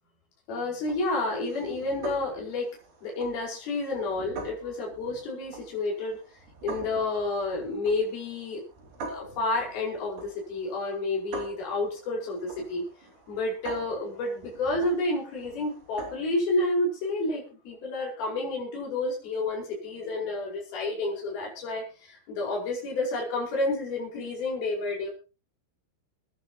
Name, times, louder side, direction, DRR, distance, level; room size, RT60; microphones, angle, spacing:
voice 1, 0.5-2.7 3.0-6.2 6.6-8.6 9.0-12.9 13.3-25.1, left 2 dB, 50° left, -1 dB, 6.6 m, -30 dB
sound 1, 0.8-16.4, right 3 dB, 55° right, 6.5 m, -44 dB
25.5 x 10.5 x 2.9 m, 0.31 s
omnidirectional pair, 5.7 m